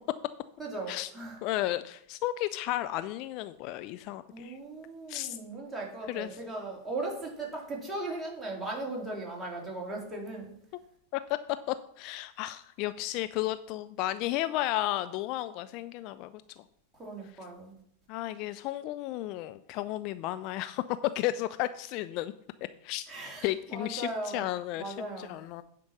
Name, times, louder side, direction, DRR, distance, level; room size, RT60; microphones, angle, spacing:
voice 1, 0.6-1.4 4.3-10.5 16.9-17.7 23.1-24.5 24.8-25.4, right 2 dB, 10° right, -3 dB, 3.4 m, -38 dB
voice 2, 1.4-4.6 5.1-5.4 6.1-6.3 11.1-11.2 11.7-16.6 18.1-20.8 21.1-22.3 22.8-23.1 23.4-25.6, left 15 dB, 40° left, 12 dB, 0.4 m, -33 dB
9.4 x 5.2 x 6.1 m, 0.69 s
figure-of-eight pair, 90°, 0 cm